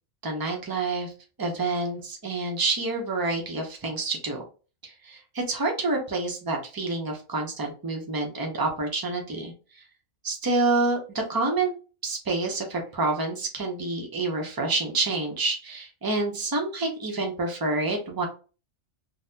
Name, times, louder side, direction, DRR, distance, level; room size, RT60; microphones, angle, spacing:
voice 1, 0.2-1.1 1.4-4.4 4.8-9.5 10.2-11.7 12.0-18.3, right 3 dB, 25° right, 2 dB, 0.5 m, -28 dB
3.9 x 2.0 x 2.7 m, 0.35 s
omnidirectional pair, 1.2 m